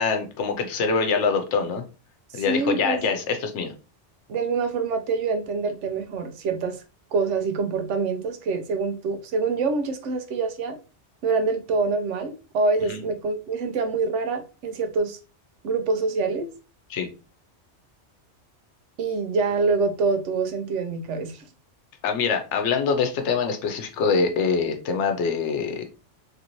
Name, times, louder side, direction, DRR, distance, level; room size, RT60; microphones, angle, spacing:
voice 1, 0.0-1.8 2.3-3.7 12.9-13.0 16.9-17.1 22.0-25.8, left 5 dB, 80° left, 0.9 m, -24 dB
voice 2, 2.3-3.1 4.3-6.8 7.1-10.8 11.2-15.2 15.6-16.5 19.0-21.4, right 4 dB, 85° right, 1.0 m, -25 dB
3.1 x 2.6 x 2.9 m
omnidirectional pair, 1.2 m